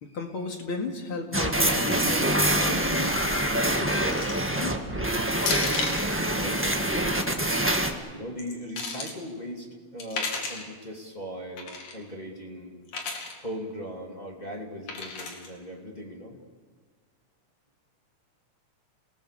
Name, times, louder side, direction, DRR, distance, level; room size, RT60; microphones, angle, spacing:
voice 1, 0.0-3.1 3.4-3.9 4.5-5.1, left 3 dB, 45° left, 3 dB, 2.8 m, -35 dB
sound 1, 1.3-7.9, right 1 dB, 10° right, 0.6 m, -25 dB
sound 2, 4.1-4.5 5.4-6.1 7.4-7.8 8.4-9.1 10.0-10.7 11.6-11.9 12.9-13.3 14.9-15.5, left 4 dB, 85° left, 4.1 m, -33 dB
voice 2, 6.4-7.6 8.1-12.8 13.4-16.4, equal, 15° left, -1 dB, 2.3 m, -39 dB
29.0 x 19.0 x 6.8 m, 1.6 s
omnidirectional pair, 3.4 m